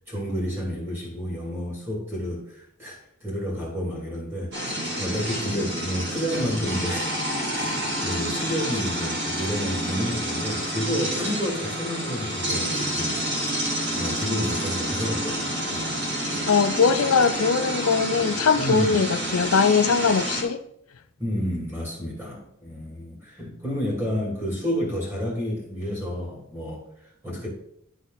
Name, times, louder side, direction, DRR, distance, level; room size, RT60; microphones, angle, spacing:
voice 1, 0.1-7.1 7.5-13.2 13.9-15.4 15.7-16.0 18.5-19.0 21.2-26.8 27.2-27.5, equal, 10° right, -3 dB, 2.9 m, -30 dB
sound 1, 4.5-20.4, equal, 50° right, 2.5 m, -29 dB
voice 2, 16.5-20.6, left 5 dB, 80° left, 10 dB, 0.5 m, -21 dB
11.5 x 4.0 x 4.1 m, 0.71 s
head